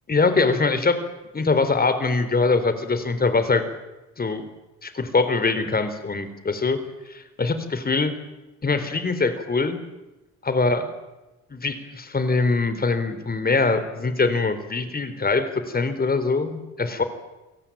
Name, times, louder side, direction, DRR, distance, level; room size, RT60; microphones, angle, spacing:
voice 1, 0.1-1.0 1.3-3.6 4.2-4.5 4.8-6.8 7.1-8.1 8.6-9.8 10.4-10.9 11.5-17.0, left 3 dB, 30° left, 11 dB, 4.0 m, -23 dB
29.0 x 18.5 x 9.0 m, 1.1 s
cardioid pair, 90°, 30 cm